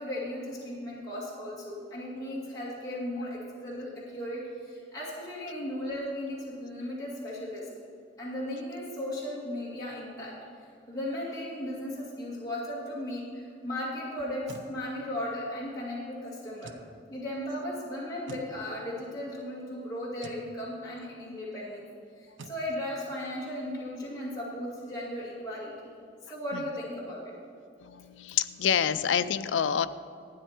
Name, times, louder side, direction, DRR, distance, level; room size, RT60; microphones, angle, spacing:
voice 1, 0.0-7.7 8.2-10.3 10.9-16.8 17.1-21.9 22.2-25.9 26.3-27.3, left 1 dB, 20° left, -7 dB, 2.3 m, -36 dB
sound 1, 14.2-14.7 16.6-16.9 18.3-18.5 20.2-20.5 22.4-22.6, right 3 dB, 85° right, 0.7 m, -46 dB
voice 2, 27.8-29.9, left 8 dB, 85° left, 13 dB, 0.4 m, -27 dB
12.5 x 9.3 x 4.4 m, 2.4 s
head